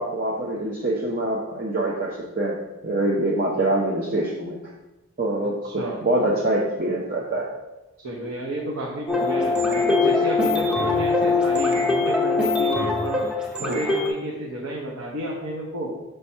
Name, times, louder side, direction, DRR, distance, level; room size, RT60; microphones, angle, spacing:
voice 1, 0.0-2.6 2.8-4.6 5.2-7.5 9.8-9.9 13.6-13.8, right 1 dB, 40° right, -3 dB, 0.6 m, -25 dB
voice 2, 5.6-6.0 8.0-13.3 13.6-15.9, right 1 dB, 75° right, -2 dB, 0.9 m, -31 dB
sound 1, 9.1-14.1, left 3 dB, 5° right, 0.6 m, -22 dB
5.8 x 3.4 x 5.4 m, 1.0 s
head